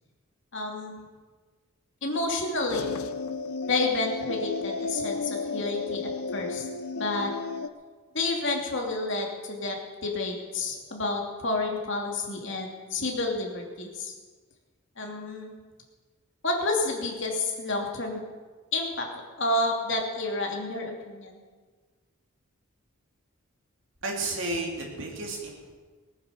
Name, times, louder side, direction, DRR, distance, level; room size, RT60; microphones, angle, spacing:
voice 1, 0.5-1.0 2.0-2.9 3.7-6.7 6.9-7.3 8.1-14.1 15.0-15.5 16.4-18.2 18.7-19.1 19.4-21.3, left 2 dB, 55° left, 1 dB, 2.7 m, -30 dB
sound 1, 2.7-7.7, left 4 dB, 75° left, 0.7 m, -33 dB
voice 2, 24.0-25.7, right 2 dB, 60° right, 0 dB, 3.2 m, -32 dB
18.5 x 9.5 x 6.9 m, 1.4 s
head